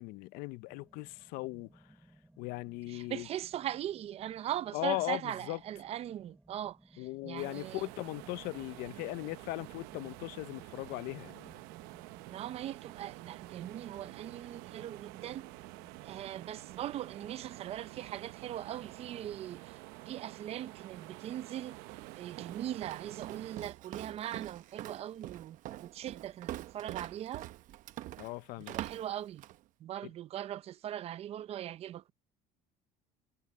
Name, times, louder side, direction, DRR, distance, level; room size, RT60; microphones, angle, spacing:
voice 1, 0.0-1.7 2.4-3.3 4.7-5.6 7.0-11.5 28.2-28.7 30.0-30.1, left 22 dB, 75° left, 0.6 m, -38 dB
sound 1, 0.7-17.7, right 1 dB, 5° right, 2.4 m, -63 dB
voice 2, 2.9-7.8 12.3-15.5 16.0-19.8 20.1-21.8 22.2-27.5 28.6-29.4 29.8-32.1, right 11 dB, 40° right, 0.6 m, -40 dB
sound 2, 7.4-23.6, right 20 dB, 80° right, 0.9 m, -49 dB
Walk footsteps, 21.9-29.6, right 14 dB, 55° right, 0.9 m, -44 dB
cardioid pair, 135°, 16 cm